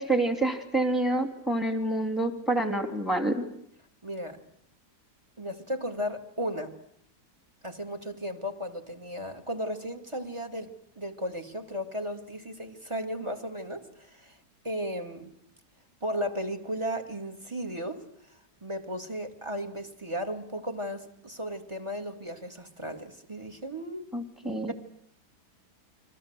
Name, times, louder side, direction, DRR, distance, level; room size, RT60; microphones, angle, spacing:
voice 1, 0.0-3.5 24.1-24.7, right 2 dB, ahead, 8 dB, 3.0 m, -27 dB
voice 2, 4.0-4.4 5.4-6.8 7.6-14.4 14.6-15.3 16.0-18.0 18.6-24.1 24.7-24.8, equal, 15° right, 9 dB, 2.1 m, -35 dB
29.5 x 22.5 x 8.0 m, 0.70 s
omnidirectional pair, 1.9 m